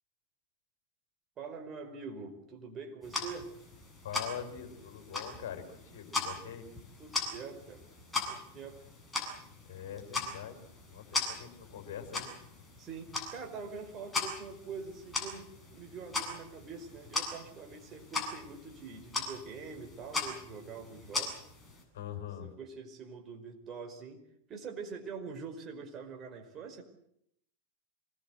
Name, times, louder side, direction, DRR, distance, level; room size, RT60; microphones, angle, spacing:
voice 1, 1.4-3.5 7.0-7.8 8.3-8.8 12.8-21.4 22.4-24.2 24.5-26.8, right 5 dB, 30° right, 4 dB, 5.3 m, -44 dB
sound 1, 3.0-21.8, left 3 dB, 10° left, 7.9 m, -39 dB
voice 2, 4.0-6.7 9.7-12.3 21.9-22.5, left 8 dB, 55° left, 5 dB, 5.9 m, -43 dB
25.0 x 20.5 x 7.9 m, 0.73 s
figure-of-eight pair, 90°, 0 cm